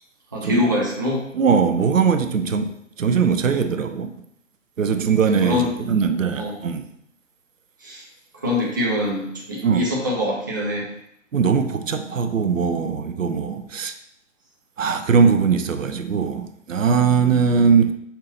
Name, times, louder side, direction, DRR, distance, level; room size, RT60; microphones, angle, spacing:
voice 1, 0.3-1.2 5.4-5.7 6.4-6.6 7.8-8.0 8.3-10.9, left 1 dB, 20° right, -4 dB, 0.4 m, -24 dB
voice 2, 1.3-4.1 4.8-6.9 9.6-9.8 11.3-13.9 14.8-17.9, right 6 dB, 90° right, 8 dB, 0.5 m, -20 dB
5.4 x 2.6 x 2.8 m, 0.73 s
figure-of-eight pair, 135°, 38 cm